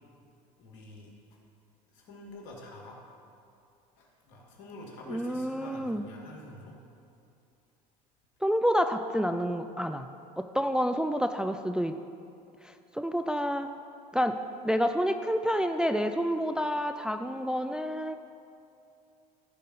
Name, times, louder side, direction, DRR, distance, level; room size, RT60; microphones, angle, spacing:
voice 1, 0.6-1.1 1.9-3.0 4.0-6.8, left 2 dB, 70° left, -1 dB, 2.4 m, -47 dB
voice 2, 5.1-6.1 8.4-10.1 10.4-12.0 12.6-13.7 14.1-14.4 14.6-18.2, equal, 5° right, 7 dB, 0.4 m, -28 dB
15.0 x 5.1 x 5.5 m, 2.6 s
hypercardioid pair, 80°, 21 cm